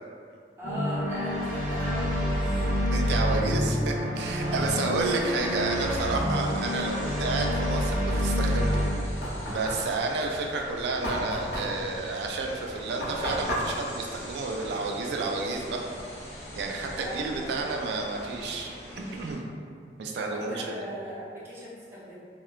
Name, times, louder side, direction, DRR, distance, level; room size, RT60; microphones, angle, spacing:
voice 1, 0.6-2.7 3.2-3.7 4.4-4.7 17.0-17.6 20.3-22.2, equal, 15° right, -9 dB, 0.6 m, -39 dB
sound 1, 0.6-8.9, equal, 50° right, 0.8 m, -27 dB
voice 2, 2.9-8.9 9.5-15.8 16.5-18.7 19.1-19.4 20.0-20.8, right 3 dB, 70° right, 1 dB, 0.3 m, -31 dB
sound 2, 4.2-19.4, equal, 35° left, 0.8 m, -43 dB
Knock, 8.7-15.1, equal, 70° left, 0.7 m, -35 dB
2.9 x 2.0 x 2.3 m, 2.2 s
head